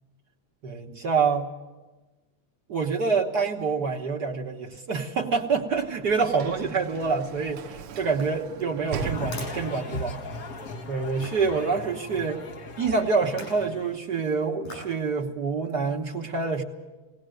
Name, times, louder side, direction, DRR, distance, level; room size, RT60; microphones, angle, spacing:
voice 1, 0.6-1.5 2.7-10.2 10.9-12.4 12.8-16.6, right 4 dB, 50° right, 1 dB, 1.2 m, -26 dB
Sliding door / Slam, 5.2-10.0, right 8 dB, 70° right, 1.2 m, -39 dB
sound 1, 8.1-10.5 11.2-11.5 13.2-13.7 14.6-15.0 15.5-15.6, left 1 dB, 85° left, 8.4 m, -44 dB
sound 2, 8.9-14.0, left 2 dB, 60° left, 0.9 m, -37 dB
19.0 x 19.0 x 7.8 m, 1.2 s
omnidirectional pair, 3.4 m